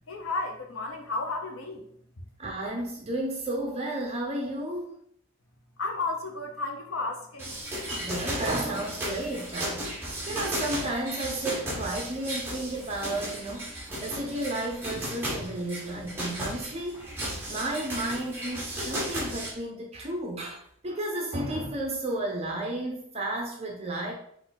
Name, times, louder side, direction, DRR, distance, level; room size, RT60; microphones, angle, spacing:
voice 1, 0.1-1.9 5.8-7.6, left 3 dB, 85° left, 3 dB, 0.9 m, -33 dB
voice 2, 2.4-4.9 7.9-13.7 14.0-17.0 17.5-24.1, right 1 dB, 30° right, -1 dB, 0.6 m, -32 dB
sound 1, 7.4-19.5, equal, 10° right, 1.0 m, -35 dB
4.5 x 2.6 x 3.9 m, 0.67 s
head